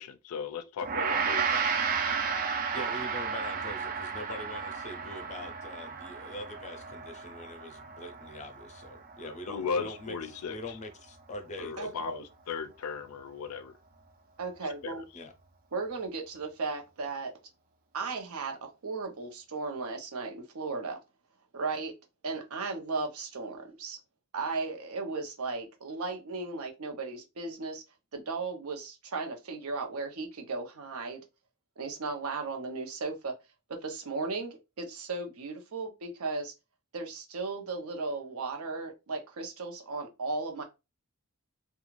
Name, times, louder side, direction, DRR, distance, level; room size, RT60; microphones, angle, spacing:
voice 1, 0.0-1.6 9.2-10.8 11.6-13.8 14.8-15.0, left 5 dB, 85° left, 0.4 m, -37 dB
Gong, 0.8-10.2, right 6 dB, 40° right, 0.4 m, -33 dB
voice 2, 2.7-11.9 15.1-15.3, left 1 dB, 35° left, 0.5 m, -43 dB
voice 3, 11.8-12.2 14.4-15.0 15.7-17.3 17.9-21.0 21.5-21.9 22.2-24.0 24.3-27.8 28.1-31.2 31.8-33.3 33.7-36.5 36.9-40.6, right 3 dB, 75° right, 0.7 m, -36 dB
2.4 x 2.3 x 3.0 m
head